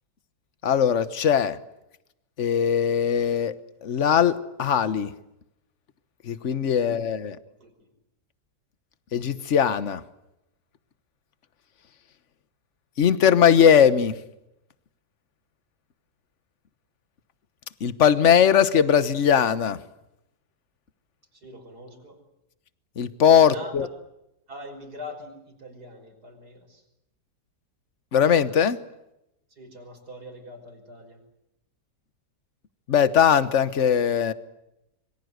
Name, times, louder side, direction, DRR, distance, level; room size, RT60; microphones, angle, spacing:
voice 1, 0.6-1.6 2.4-5.1 6.2-7.4 9.1-10.0 13.0-14.1 17.8-19.8 23.0-23.9 28.1-28.8 32.9-34.3, left 8 dB, 45° left, 14 dB, 1.4 m, -20 dB
voice 2, 6.7-7.1 7.5-7.9 21.3-22.2 23.4-23.7 24.5-26.8 29.5-31.2, left 1 dB, 65° right, 4 dB, 6.0 m, -43 dB
26.0 x 23.5 x 8.0 m, 0.87 s
omnidirectional pair, 1.8 m